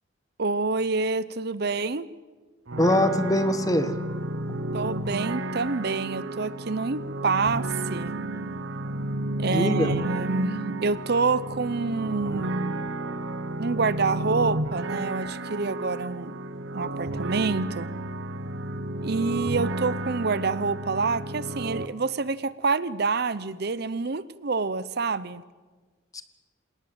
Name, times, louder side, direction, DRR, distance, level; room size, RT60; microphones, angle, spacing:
voice 1, 0.4-2.1 4.7-8.2 9.4-12.8 13.6-16.4 16.7-17.9 19.0-25.4, right 4 dB, 55° right, 17 dB, 0.7 m, -27 dB
sound 1, 2.7-21.9, right 1 dB, 80° right, 1.1 m, -32 dB
voice 2, 2.8-3.9 4.5-4.6 9.5-9.9 26.1-26.2, left 1 dB, 20° left, 10 dB, 1.5 m, -23 dB
28.0 x 18.5 x 8.0 m, 1.4 s
head